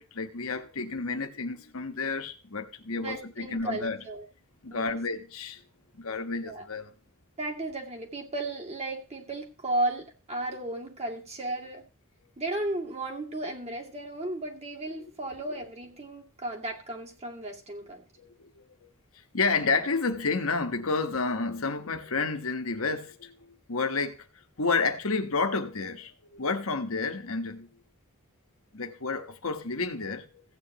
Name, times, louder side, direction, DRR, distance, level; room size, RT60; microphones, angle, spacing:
voice 1, 0.0-4.0 4.6-5.6 5.9-6.9 18.2-18.6 19.3-23.3 23.7-24.2 24.6-27.7 28.7-30.4, left 4 dB, 85° left, 1.3 m, -30 dB
voice 2, 2.9-4.2 4.7-5.0 6.4-6.7 7.4-11.8 12.4-18.0, right 2 dB, 30° right, 2.4 m, -34 dB
15.5 x 8.9 x 3.0 m
head